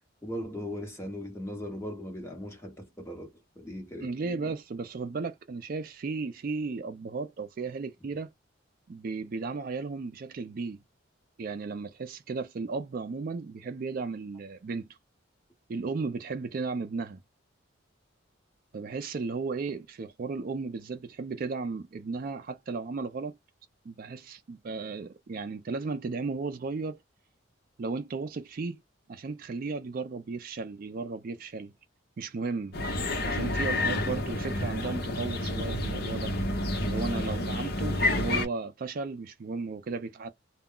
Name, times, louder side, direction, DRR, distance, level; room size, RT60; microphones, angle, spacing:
voice 1, 0.2-3.3 3.6-4.5, equal, 15° left, 1.0 m, -38 dB
voice 2, 4.0-8.3 8.9-10.8 11.4-14.9 15.7-17.2 18.7-23.4 23.9-27.0 27.8-28.8 29.1-31.7 32.2-32.8 33.2-36.3 36.8-40.3, right 4 dB, 45° right, 0.3 m, -35 dB
sound 1, 32.7-38.5, left 1 dB, 50° left, 0.8 m, -29 dB
2.2 x 2.1 x 3.6 m
head